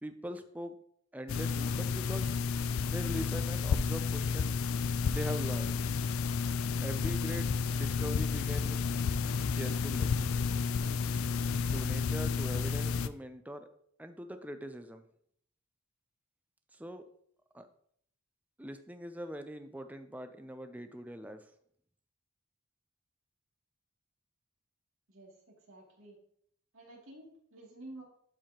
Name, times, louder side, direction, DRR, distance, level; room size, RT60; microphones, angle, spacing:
voice 1, 0.0-0.8 1.1-2.3 2.9-4.5 5.0-5.8 6.8-8.9 9.5-10.3 11.7-13.7 14.0-15.0 16.7-17.0 17.5-17.7 18.6-21.5, equal, 5° right, 8 dB, 0.4 m, -42 dB
sound 1, 1.3-13.1, left 5 dB, 80° left, 0.4 m, -31 dB
voice 2, 25.1-26.2 26.7-28.0, right 1 dB, 75° right, -3 dB, 2.7 m, -51 dB
12.0 x 4.7 x 3.0 m, 0.66 s
head